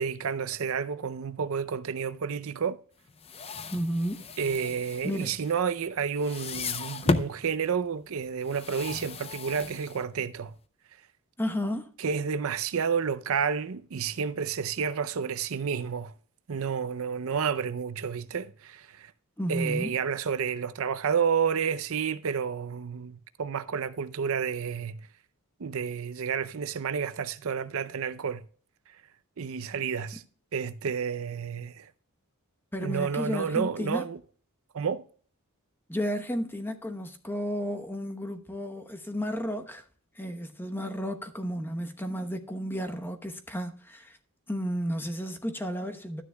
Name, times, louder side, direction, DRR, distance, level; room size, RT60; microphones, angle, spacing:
voice 1, 0.0-2.8 4.4-10.5 12.0-16.1 16.5-19.1 19.5-25.0 25.6-28.4 29.4-30.2 30.5-31.9 32.8-34.2 34.7-35.0, right 6 dB, 65° right, 0.5 m, -30 dB
sound 1, 3.1-5.9 6.2-7.4 8.4-10.3, left 3 dB, 25° left, 0.6 m, -34 dB
voice 2, 3.7-4.3 5.0-5.4 11.4-11.9 19.4-19.9 32.7-34.0 35.9-39.8 40.2-44.2 44.5-46.2, equal, 10° left, 0.9 m, -32 dB
12.5 x 9.8 x 2.2 m
head